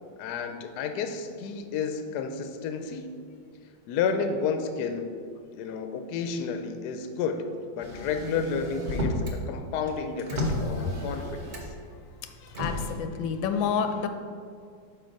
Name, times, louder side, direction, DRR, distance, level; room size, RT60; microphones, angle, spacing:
voice 1, 0.2-3.2 3.9-5.1 5.5-7.4 7.7-11.7, left 5 dB, 70° left, 7 dB, 1.0 m, -31 dB
Motor vehicle (road), 7.8-9.4 9.7-11.9 12.5-12.9, left 1 dB, 50° right, 0.5 m, -32 dB
voice 2, 12.2-14.1, left 6 dB, 90° left, 7 dB, 1.3 m, -29 dB
5.7 x 4.7 x 5.2 m, 2.2 s
omnidirectional pair, 2.1 m